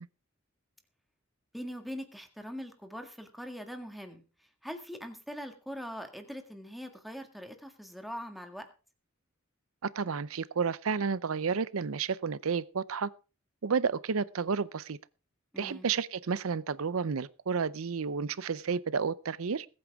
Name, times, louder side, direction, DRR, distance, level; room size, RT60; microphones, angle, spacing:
voice 1, 1.5-4.2 4.6-8.7 15.5-15.9, equal, ahead, 1.8 m, -42 dB
voice 2, 9.8-13.1 13.6-15.0 15.6-19.7, right 5 dB, 75° right, 0.6 m, -31 dB
21.0 x 8.8 x 3.6 m
head